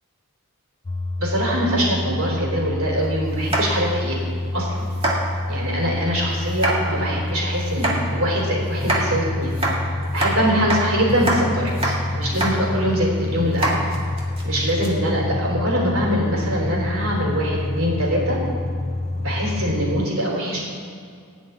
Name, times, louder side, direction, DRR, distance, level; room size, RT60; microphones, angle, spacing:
sound 1, 0.9-20.1, left 2 dB, 30° left, 0.4 m, -27 dB
voice 1, 1.2-4.2 4.5-4.9 5.5-9.6 10.1-13.9 14.4-18.4 19.2-20.6, equal, 65° right, -2 dB, 3.6 m, -23 dB
sound 2, 3.4-4.0 4.4-4.6 4.9-5.2 6.5-6.8 7.7-8.0 8.7-9.0 9.5-10.3 10.7-10.8 11.1-11.4 11.7-12.0 12.2-12.5 12.9-13.0 13.5-14.9, right 1 dB, 25° right, 2.0 m, -24 dB
14.5 x 5.4 x 9.3 m, 2.3 s
head